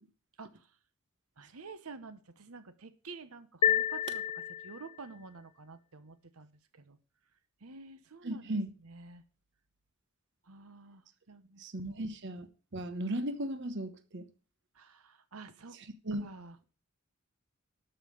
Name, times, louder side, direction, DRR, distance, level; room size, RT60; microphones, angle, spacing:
voice 1, 0.4-0.7 1.4-4.2 4.6-7.0 7.6-9.2 10.4-11.6 11.9-12.0 14.7-15.8 16.2-16.7, right 4 dB, 90° right, 1.1 m, -50 dB
sound 1, 3.6-5.1, left 8 dB, 25° left, 0.5 m, -30 dB
voice 2, 8.2-8.7 11.6-12.5 12.7-14.3 16.0-16.3, right 1 dB, 55° right, 1.0 m, -36 dB
12.5 x 5.7 x 6.4 m
head